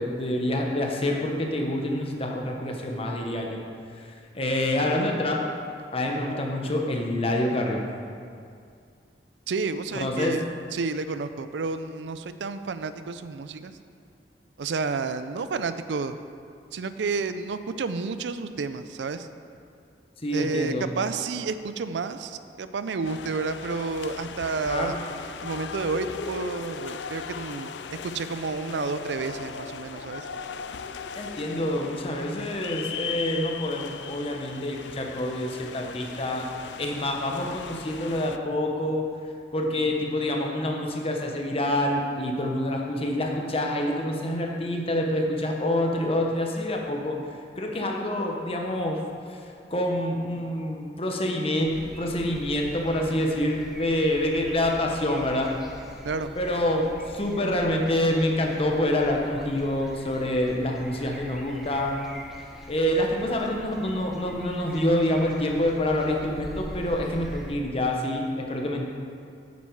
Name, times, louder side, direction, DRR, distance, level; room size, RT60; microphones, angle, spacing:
voice 1, 0.0-3.6 4.0-5.4 5.9-7.8 9.9-10.4 20.2-20.9 24.6-25.0 31.2-36.5 36.8-39.1 39.5-49.0 49.3-55.5 56.4-62.0 62.7-68.9, left 1 dB, 35° left, 1 dB, 1.0 m, -27 dB
voice 2, 9.5-10.4 10.7-13.7 14.6-16.1 16.7-19.3 20.3-24.9 25.4-30.3 56.0-56.3, right 4 dB, 85° right, 11 dB, 0.4 m, -30 dB
sound 1, 23.0-38.4, left 6 dB, 80° left, 0.4 m, -38 dB
sound 2, 51.6-67.5, equal, ahead, 0.9 m, -44 dB
8.5 x 8.4 x 4.6 m, 2.3 s
head